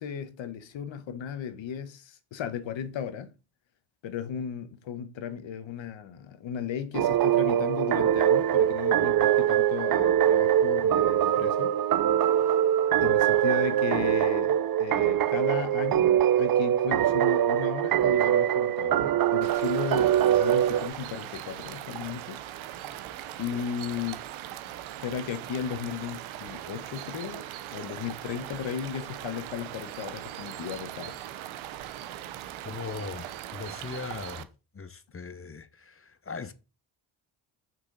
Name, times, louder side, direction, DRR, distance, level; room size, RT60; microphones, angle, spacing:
voice 1, 0.0-3.3 4.0-11.8 13.0-22.4 23.4-24.2 25.0-31.2, left 8 dB, 75° left, 1.3 m, -35 dB
sound 1, 6.9-20.9, right 11 dB, 50° right, 0.6 m, -23 dB
sound 2, 19.4-34.4, right 12 dB, 85° right, 0.9 m, -40 dB
voice 2, 32.6-34.5 34.7-36.5, left 4 dB, 30° left, 1.0 m, -39 dB
6.2 x 6.2 x 4.0 m
supercardioid pair, 60°, 46 cm